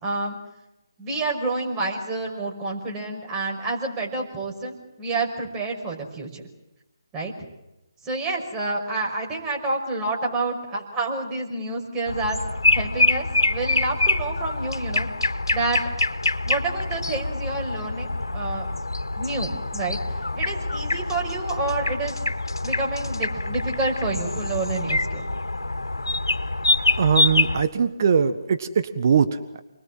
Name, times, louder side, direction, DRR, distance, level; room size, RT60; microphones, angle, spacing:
voice 1, 0.0-0.4 1.0-6.4 7.1-7.3 8.0-12.4 12.7-15.1 15.5-15.8 16.4-18.7 19.2-20.0 20.4-22.2 22.6-25.3, right 3 dB, 15° right, 0 dB, 5.7 m, -28 dB
sound 1, 12.1-27.6, left 2 dB, 85° left, 2.1 m, -25 dB
voice 2, 27.0-29.6, right 6 dB, 45° right, 9 dB, 1.5 m, -21 dB
29.5 x 21.5 x 7.8 m, 0.92 s
figure-of-eight pair, 150°, 2 cm